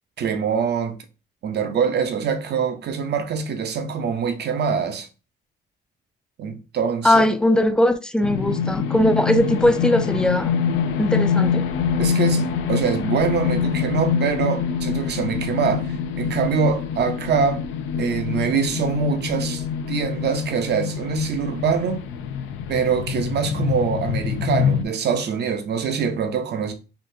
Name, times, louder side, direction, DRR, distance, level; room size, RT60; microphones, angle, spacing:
voice 1, 0.2-1.0 1.4-5.1 6.4-7.2 12.0-17.6 18.0-22.1 22.7-26.7, right 6 dB, 55° right, 0.6 m, -24 dB
voice 2, 7.0-10.5 11.0-11.7, left 1 dB, 5° left, 0.3 m, -19 dB
sound 1, 8.2-24.9, left 7 dB, 85° left, 0.4 m, -25 dB
3.7 x 2.4 x 2.6 m
cardioid pair, 90°, 20 cm